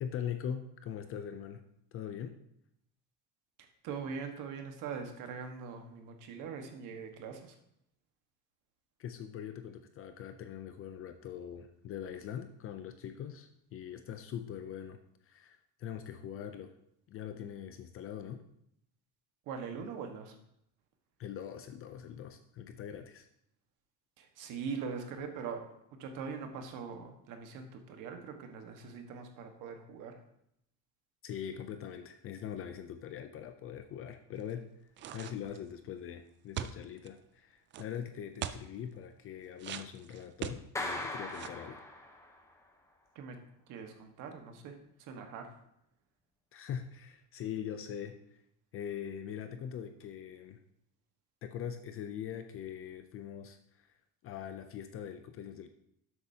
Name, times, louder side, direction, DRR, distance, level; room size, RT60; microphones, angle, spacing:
voice 1, 0.0-1.6 1.9-2.4 9.0-16.7 17.1-18.4 21.2-23.3 31.2-34.7 35.1-41.8 46.5-48.4 48.7-50.6 51.4-54.0 54.2-55.7, left 9 dB, 40° left, 8 dB, 0.5 m, -42 dB
voice 2, 3.8-7.5 19.5-20.3 24.2-30.2 43.1-43.4 43.7-45.5, right 6 dB, 60° right, 5 dB, 1.5 m, -42 dB
sound 1, 35.0-35.7 36.6-37.1 37.7-37.8 38.4-38.7 39.6-40.9 41.3-41.7, right 10 dB, 35° right, 0.4 m, -40 dB
Clapping, 40.8-42.5, left 2 dB, 10° left, 0.9 m, -39 dB
12.0 x 7.9 x 2.8 m, 0.74 s
cardioid pair, 170°, 35 cm